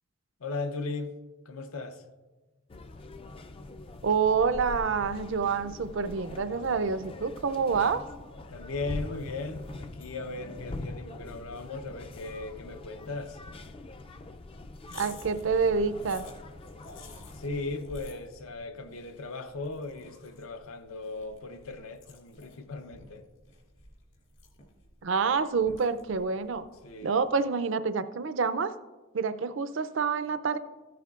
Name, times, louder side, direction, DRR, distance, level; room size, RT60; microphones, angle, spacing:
voice 1, 0.4-1.2 1.5-2.0 8.5-13.4 17.3-23.3 26.8-27.2, left 3 dB, 80° left, 0.7 m, -37 dB
sound 1, 2.7-17.8, left 2 dB, 25° left, 0.3 m, -43 dB
voice 2, 4.0-8.0 14.9-16.2 25.0-26.6 27.0-28.7 29.1-30.6, right 5 dB, 60° right, 0.4 m, -27 dB
sound 2, 14.8-27.3, left 2 dB, 65° left, 2.0 m, -52 dB
14.0 x 9.3 x 2.4 m
head